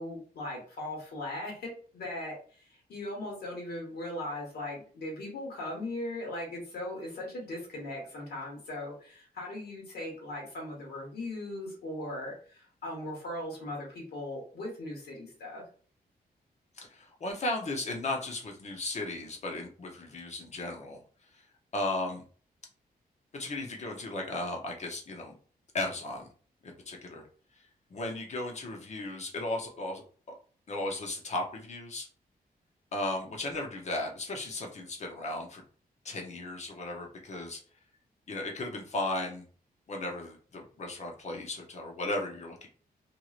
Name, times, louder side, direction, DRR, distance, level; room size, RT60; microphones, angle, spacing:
voice 1, 0.0-15.6, left 1 dB, 85° left, -2 dB, 1.3 m, -39 dB
voice 2, 16.8-21.0 21.3-21.4 21.7-22.2 23.3-25.3 25.7-26.3 26.6-27.2 27.9-30.0 30.3-30.4 30.7-32.1 32.9-35.6 36.0-37.6 38.3-39.4 39.9-42.7, left 2 dB, 45° left, 1 dB, 0.8 m, -35 dB
3.0 x 2.6 x 2.4 m, 0.42 s
wide cardioid pair, 140°, 16 cm